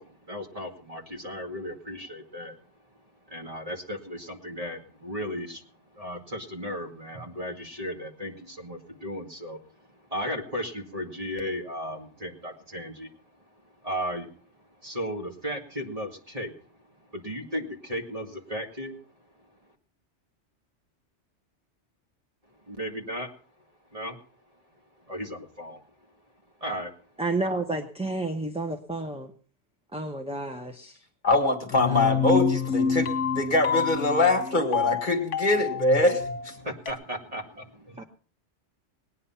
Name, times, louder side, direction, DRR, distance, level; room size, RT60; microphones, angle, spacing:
voice 1, 0.0-2.6 3.3-5.6 5.9-13.1 13.8-14.3 14.8-16.5 17.1-19.0 22.7-23.3 23.9-24.2 25.1-25.8 26.6-26.9 36.6-38.0, equal, 30° right, 2 dB, 2.2 m, -35 dB
voice 2, 27.2-29.3 29.9-31.0 31.9-32.2 38.0-38.1, right 2 dB, 5° right, 5 dB, 0.9 m, -31 dB
voice 3, 31.2-33.1 33.3-36.6, left 2 dB, 40° left, 5 dB, 1.9 m, -23 dB
sound 1, 31.7-36.9, left 6 dB, 80° left, 1.6 m, -28 dB
19.5 x 9.6 x 5.7 m, 0.43 s
omnidirectional pair, 1.2 m